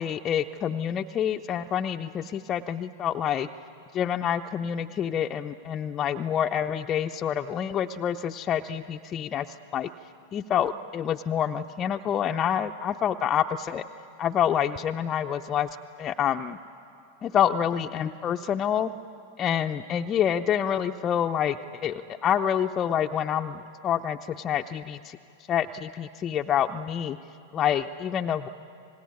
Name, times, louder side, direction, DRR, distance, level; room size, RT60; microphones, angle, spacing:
voice 1, 0.0-3.5 3.9-9.9 10.3-13.8 14.2-15.7 16.0-16.6 17.2-18.9 19.4-25.2 25.5-27.2 27.5-28.5, left 9 dB, 30° left, 5 dB, 0.6 m, -27 dB
27.5 x 19.0 x 9.7 m, 2.7 s
figure-of-eight pair, 90°, 0 cm